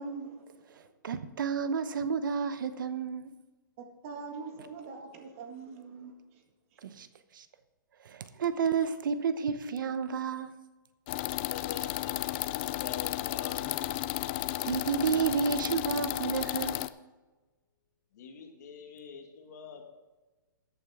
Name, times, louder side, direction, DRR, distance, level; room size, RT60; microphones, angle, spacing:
voice 1, 0.0-0.9 3.8-6.4, right 4 dB, 40° right, 3 dB, 1.9 m, -43 dB
voice 2, 1.0-3.3 6.8-7.1 7.3-7.5 8.0-10.5 14.6-16.8, right 6 dB, 70° right, 12 dB, 0.8 m, -31 dB
sound 1, 11.1-16.9, left 16 dB, 30° left, 0.4 m, -33 dB
voice 3, 11.5-13.8 18.1-19.9, left 6 dB, 50° left, 4 dB, 2.0 m, -45 dB
sound 2, 13.7-16.8, left 7 dB, 15° left, 0.9 m, -51 dB
14.5 x 8.7 x 3.6 m, 1.2 s
hypercardioid pair, 155°, 11 cm